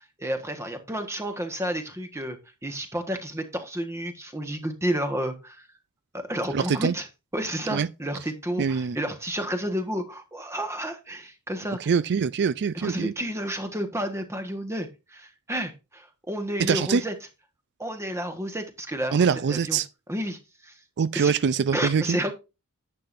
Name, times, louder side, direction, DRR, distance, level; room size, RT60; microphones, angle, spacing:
voice 1, 0.0-2.4 2.6-5.7 6.1-7.1 7.3-11.8 12.7-17.1 17.8-19.8 20.1-20.7 21.1-21.3 21.7-22.3, equal, 15° right, 1.4 m, -31 dB
voice 2, 6.5-6.9 7.7-7.9 8.6-9.0 11.9-13.1 16.7-17.0 19.1-19.9 21.0-22.2, right 6 dB, 55° right, 0.4 m, -23 dB
10.5 x 7.6 x 2.6 m
head